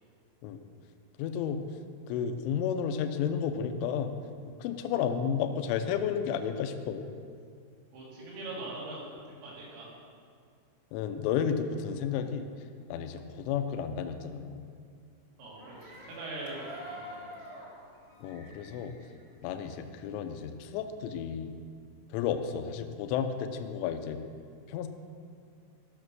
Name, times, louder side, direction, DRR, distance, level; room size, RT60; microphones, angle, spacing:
voice 1, 1.2-1.7 2.1-4.2 4.6-7.1 10.9-12.5 12.9-14.6 18.2-18.9 19.4-21.5 22.1-24.2 24.7-24.9, left 7 dB, 80° left, 7 dB, 3.1 m, -32 dB
voice 2, 7.9-9.9 15.4-17.3, right 2 dB, 75° right, -6 dB, 5.5 m, -42 dB
sound 1, 15.5-20.1 20.5-21.6, equal, 20° right, 0.8 m, -48 dB
16.5 x 6.4 x 6.3 m, 2.2 s
omnidirectional pair, 5.8 m